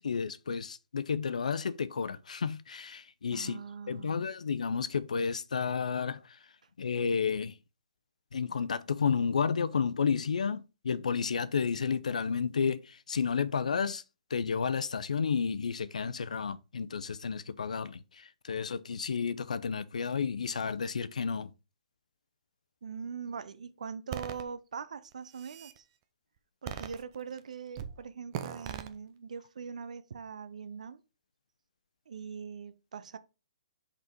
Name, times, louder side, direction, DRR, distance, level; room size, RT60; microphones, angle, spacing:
voice 1, 0.0-6.4 6.8-7.5 8.3-14.0 14.3-21.5, left 6 dB, 85° left, 0.6 m, -31 dB
voice 2, 3.3-4.3 22.8-25.8 26.6-31.0 32.1-33.2, right 6 dB, 80° right, 0.7 m, -42 dB
sound 1, 24.1-24.4 25.1-25.8 26.7-27.4 27.7-28.0 28.3-28.9, right 10 dB, 35° right, 0.7 m, -39 dB
5.4 x 4.1 x 4.4 m
hypercardioid pair, 145°, 4 cm